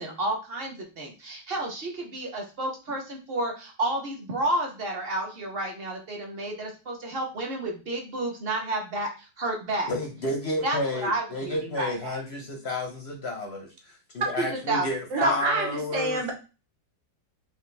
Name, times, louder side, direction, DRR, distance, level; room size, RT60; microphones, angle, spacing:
voice 1, 0.0-9.9 10.6-12.2 14.4-14.9 15.2-15.4, right 1 dB, 40° right, 1 dB, 1.0 m, -31 dB
voice 2, 9.9-16.2, left 2 dB, 55° left, 2 dB, 0.7 m, -31 dB
voice 3, 15.1-16.3, right 2 dB, 90° right, 1 dB, 1.8 m, -27 dB
5.0 x 2.4 x 3.3 m, 0.31 s
omnidirectional pair, 1.9 m